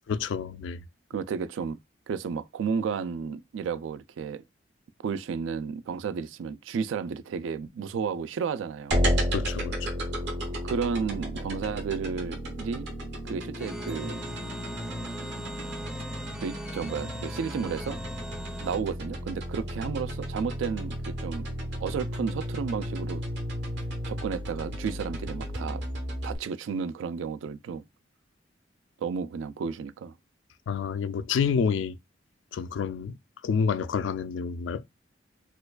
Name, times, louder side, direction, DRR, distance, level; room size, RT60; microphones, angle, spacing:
voice 1, 0.1-0.8 9.3-9.9 30.7-32.0 32.5-33.2 33.4-34.8, left 6 dB, 75° left, 0.3 m, -28 dB
voice 2, 1.1-1.8 2.1-4.4 5.0-9.1 10.6-12.9 13.3-14.2 16.4-18.0 18.6-21.5 21.8-23.2 24.1-25.8 26.2-27.8 29.0-30.1, right 6 dB, 90° right, 0.3 m, -32 dB
sound 1, 8.9-26.4, equal, 65° right, 1.0 m, -33 dB
sound 2, 13.6-18.8, right 1 dB, 5° right, 0.4 m, -39 dB
4.3 x 2.4 x 2.2 m
head